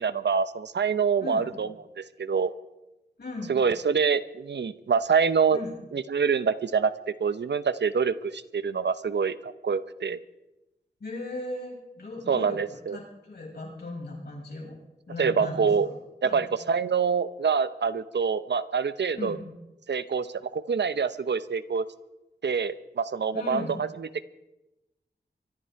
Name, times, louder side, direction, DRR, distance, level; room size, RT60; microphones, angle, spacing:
voice 1, 0.0-2.5 3.5-5.6 5.9-10.2 12.3-13.0 15.2-15.9 16.2-19.4 19.9-21.8 22.4-24.2, right 6 dB, 80° right, 13 dB, 0.8 m, -26 dB
voice 2, 1.2-1.5 3.2-3.6 5.5-5.7 11.0-14.8 15.1-15.9 16.2-16.4 19.1-19.4 23.3-23.8, left 2 dB, 65° left, -3 dB, 7.5 m, -37 dB
24.0 x 12.5 x 4.7 m, 0.98 s
wide cardioid pair, 100°, 18 cm